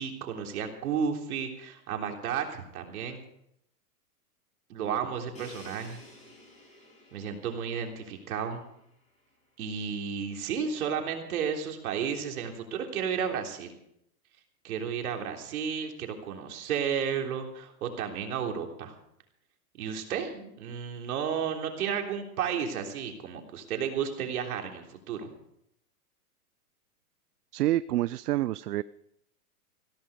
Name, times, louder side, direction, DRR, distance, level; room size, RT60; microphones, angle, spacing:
voice 1, 0.0-3.2 4.7-6.0 7.1-8.6 9.6-13.7 14.6-18.9 19.8-25.3, right 7 dB, 70° right, 3 dB, 3.6 m, -33 dB
Crash cymbal, 5.3-9.2, left 1 dB, 15° left, 6.8 m, -52 dB
voice 2, 27.5-28.8, right 15 dB, 90° right, 17 dB, 0.6 m, -27 dB
16.0 x 14.0 x 5.1 m, 0.75 s
hypercardioid pair, 150°, 45 cm